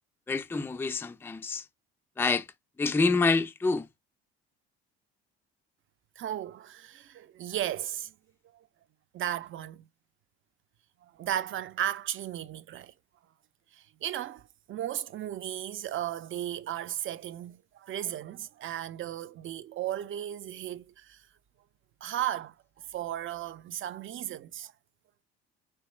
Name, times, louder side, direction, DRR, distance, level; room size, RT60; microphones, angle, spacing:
voice 1, 0.3-1.6 2.2-2.5 2.8-3.9, left 4 dB, 5° left, 0.4 m, -27 dB
voice 2, 6.2-8.1 9.1-9.8 11.1-12.9 13.7-14.4 14.7-21.2 22.0-24.7, right 11 dB, 45° right, 0.5 m, -35 dB
4.5 x 3.0 x 3.1 m
hypercardioid pair, 70°, 30 cm